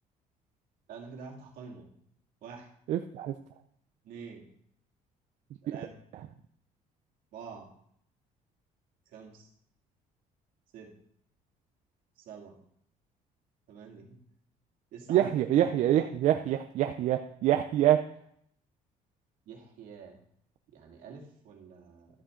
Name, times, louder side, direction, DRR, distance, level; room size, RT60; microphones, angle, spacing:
voice 1, 0.9-1.9 2.4-2.7 4.1-4.4 5.6-5.9 7.3-7.7 9.1-9.4 10.7-10.9 12.3-12.5 13.7-14.2 14.9-15.3 19.5-20.2 20.7-22.1, right 6 dB, 75° right, 0 dB, 2.3 m, -46 dB
voice 2, 2.9-3.3 5.7-5.9 6.1-6.3 15.1-18.0, right 12 dB, 55° right, 6 dB, 0.5 m, -26 dB
12.0 x 8.5 x 3.8 m, 0.67 s
cardioid pair, 165°, 14 cm